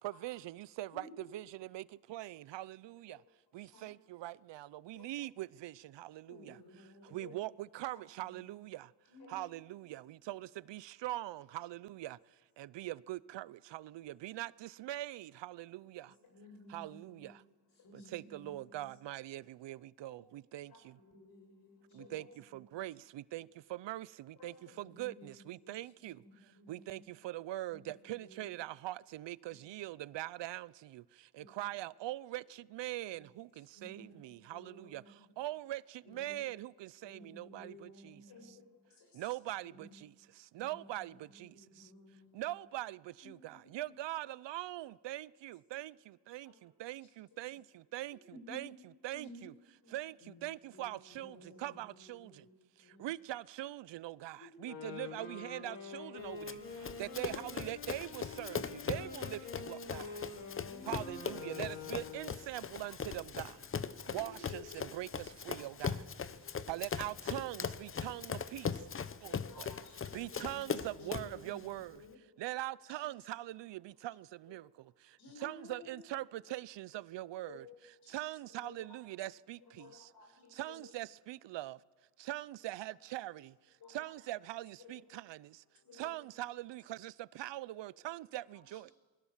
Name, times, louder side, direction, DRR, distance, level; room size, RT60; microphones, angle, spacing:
voice 1, 0.0-3.2 3.5-8.9 9.3-16.2 16.7-17.4 17.9-21.0 21.9-26.2 26.7-38.5 39.1-41.9 42.3-48.2 48.5-48.7 49.0-49.5 49.9-52.5 52.8-60.2 60.9-66.1 66.7-69.7 70.1-72.0 72.4-77.6 78.1-80.1 80.5-81.8 82.2-85.6 85.9-88.9, right 15 dB, 90° right, 0.7 m, -43 dB
voice 2, 0.9-1.4 6.3-7.4 8.2-8.4 9.1-9.4 16.3-17.4 17.8-18.9 21.0-22.8 24.7-27.1 27.7-28.5 29.5-29.6 31.3-31.6 33.1-33.3 33.7-35.3 36.1-36.5 37.0-38.6 39.6-40.0 40.6-42.6 43.2-44.0 48.3-48.7 49.1-49.5 49.8-52.5 52.8-53.1 54.3-54.5 60.7-61.5 64.1-64.9 66.4-66.5 70.2-71.6 71.9-72.2 75.2-76.0, left 2 dB, 50° left, 5.5 m, -56 dB
voice 3, 21.9-22.3 24.3-24.5 38.3-38.6 39.0-39.3 46.4-46.6 56.3-56.9 61.6-61.7 65.6-65.7 69.3-70.7 71.0-71.4 72.9-73.0 75.2-75.5 77.5-77.6 78.0-78.2 78.6-78.9 79.6-80.8 83.8-84.1 84.8-84.9 85.8-86.2 88.0-88.1 88.7-88.9, left 5 dB, 65° left, 7.9 m, -57 dB
Wind instrument woodwind instrument, 54.5-62.4, left 5 dB, 80° left, 6.9 m, -47 dB
Run, 56.5-71.4, left 6 dB, 30° left, 0.8 m, -40 dB
27.0 x 21.5 x 7.3 m
wide cardioid pair, 165°, 42 cm